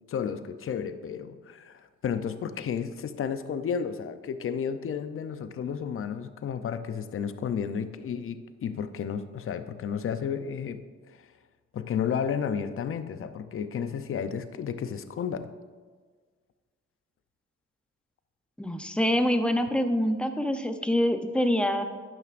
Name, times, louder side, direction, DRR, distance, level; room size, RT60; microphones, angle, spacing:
voice 1, 0.1-10.8 11.1-11.2 11.7-15.5, left 7 dB, 45° left, 11 dB, 0.6 m, -32 dB
voice 2, 18.6-21.8, left 1 dB, 5° left, 7 dB, 0.7 m, -25 dB
12.0 x 9.2 x 2.6 m, 1.5 s
cardioid pair, 90°, 30 cm